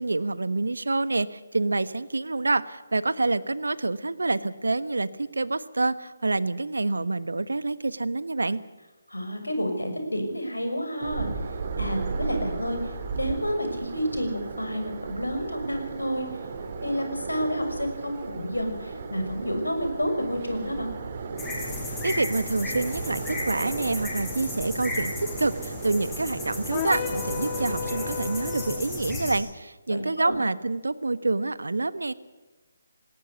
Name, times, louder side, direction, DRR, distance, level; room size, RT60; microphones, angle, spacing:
voice 1, 0.0-8.6 22.0-32.1, right 3 dB, 75° right, 16 dB, 1.2 m, -27 dB
voice 2, 9.1-11.3 11.8-16.3 16.8-20.9 29.9-30.4, equal, 90° left, 6 dB, 6.3 m, -30 dB
sound 1, 11.0-28.9, right 4 dB, 40° right, 3.0 m, -36 dB
sound 2, 21.4-29.4, left 2 dB, 10° left, 6.7 m, -35 dB
sound 3, 26.7-28.9, left 9 dB, 25° left, 1.7 m, -33 dB
20.0 x 18.5 x 8.3 m, 1.2 s
figure-of-eight pair, 150°, 0 cm